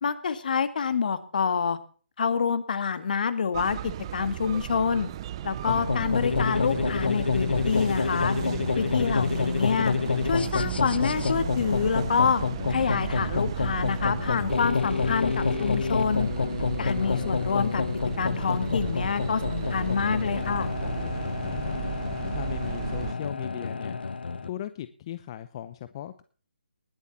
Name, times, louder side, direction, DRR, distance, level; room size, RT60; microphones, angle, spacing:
voice 1, 0.0-1.8 2.2-5.1 5.4-8.4 8.8-10.0 10.2-12.4 12.7-16.3 16.8-17.8 18.2-20.7, left 6 dB, 55° left, 12 dB, 1.8 m, -27 dB
sound 1, 3.5-23.1, right 12 dB, 30° right, 0.7 m, -35 dB
sound 2, 5.7-24.5, left 5 dB, 70° left, 1.1 m, -28 dB
voice 2, 21.4-22.0 22.3-24.0 24.4-26.2, left 12 dB, 30° left, 13 dB, 0.7 m, -38 dB
20.0 x 7.3 x 5.7 m, 0.40 s
figure-of-eight pair, 150°, 6 cm